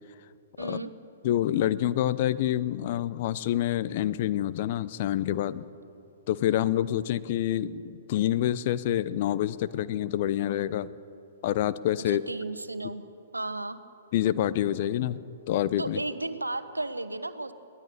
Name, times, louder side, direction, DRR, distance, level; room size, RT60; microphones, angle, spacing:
voice 1, 0.6-0.9 12.1-13.0 13.3-13.8 15.8-17.5, right 2 dB, 85° right, 12 dB, 1.1 m, -34 dB
voice 2, 1.2-5.7 6.3-10.9 11.4-12.2 14.1-15.2 15.5-16.0, left 12 dB, 45° left, 15 dB, 0.7 m, -27 dB
22.5 x 18.0 x 6.8 m, 2.9 s
figure-of-eight pair, 115°, 0 cm